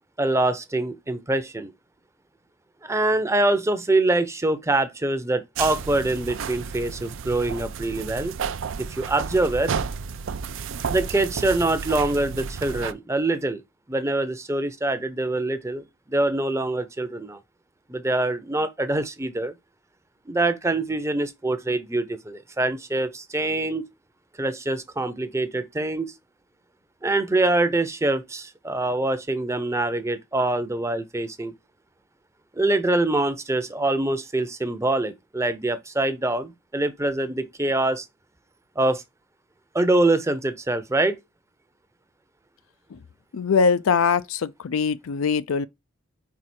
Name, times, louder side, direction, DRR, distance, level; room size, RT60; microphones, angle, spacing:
voice 1, 0.2-1.7 2.8-8.4 8.8-9.7 10.9-13.6 13.9-17.4 17.9-19.5 20.3-23.8 24.4-26.1 27.0-31.5 32.6-38.1 38.8-39.0 39.7-41.2, right 2 dB, 15° right, 0.6 m, -24 dB
sound 1, 5.6-12.9, right 6 dB, 70° right, 0.5 m, -32 dB
voice 2, 43.3-45.7, left 5 dB, 85° left, 0.4 m, -22 dB
4.7 x 4.6 x 4.3 m
head